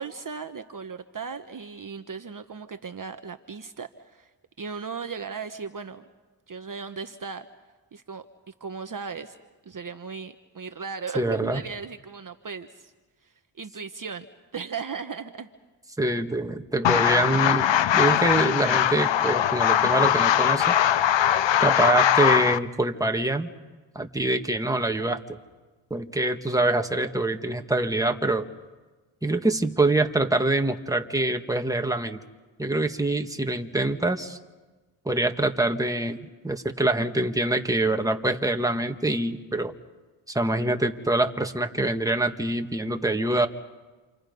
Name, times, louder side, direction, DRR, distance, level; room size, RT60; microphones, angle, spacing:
voice 1, 0.0-4.3 4.6-6.0 6.5-7.5 7.9-9.4 9.6-12.9 13.2-14.3 14.5-15.5, right 5 dB, 40° right, 8 dB, 1.2 m, -37 dB
voice 2, 11.1-11.6 16.0-17.6 17.9-20.8 21.6-23.5 23.9-25.2 25.9-28.4 29.2-32.2 32.6-34.4 35.0-39.7 40.3-43.5, right 2 dB, 5° right, 5 dB, 1.8 m, -25 dB
sound 1, 16.8-22.6, left 10 dB, 60° left, 0.9 m, -21 dB
28.5 x 26.5 x 5.4 m, 1.3 s
supercardioid pair, 55°, 50 cm